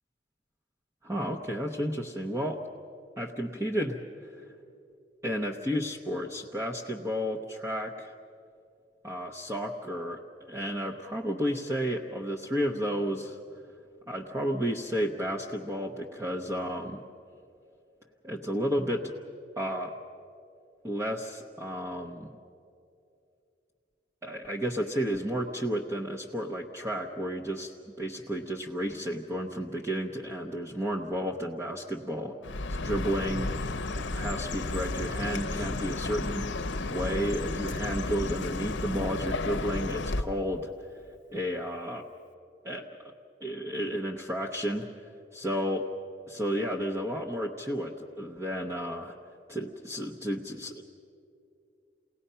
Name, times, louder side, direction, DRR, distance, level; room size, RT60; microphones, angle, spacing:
voice 1, 1.0-2.6 3.2-4.5 5.2-8.1 9.0-13.4 14.1-17.0 18.2-19.1 19.6-19.9 20.8-22.4 24.2-32.5 32.8-33.5 33.9-40.7 41.3-42.0 42.6-42.9 43.4-44.9 45.3-45.9 46.3-49.2 49.5-50.8, equal, 15° right, -1 dB, 0.9 m, -32 dB
Chirp tweet, 32.4-40.2, left 2 dB, 75° left, 0.8 m, -32 dB
29.0 x 18.5 x 5.6 m, 2.6 s
head